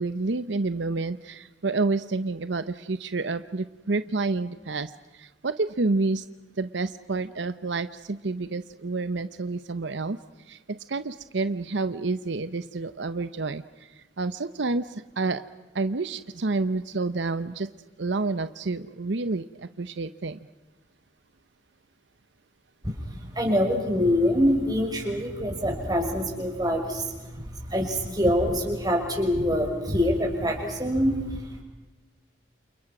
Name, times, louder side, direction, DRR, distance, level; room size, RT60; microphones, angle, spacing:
voice 1, 0.0-6.2 6.6-10.2 10.5-15.4 15.7-17.7 18.0-20.4, right 3 dB, 75° right, 12 dB, 0.8 m, -29 dB
voice 2, 22.8-31.6, equal, 20° right, 1 dB, 6.3 m, -25 dB
29.5 x 28.5 x 6.1 m, 1.1 s
head